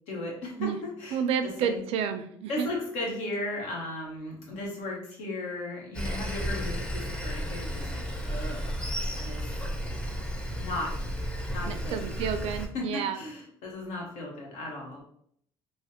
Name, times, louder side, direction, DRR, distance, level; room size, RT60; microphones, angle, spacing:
voice 1, 0.1-1.2 1.6-1.8 2.5-8.7 9.1-9.5 9.9-10.2 10.6-10.9 11.5-12.0 12.7-15.0, left 2 dB, 85° left, -2 dB, 1.1 m, -36 dB
voice 2, 1.1-2.7 11.7-13.2, right 7 dB, 70° right, 9 dB, 0.4 m, -30 dB
Sawing, 5.9-12.7, equal, 10° left, 0.5 m, -33 dB
3.2 x 2.1 x 2.8 m, 0.66 s
cardioid pair, 100°, 11 cm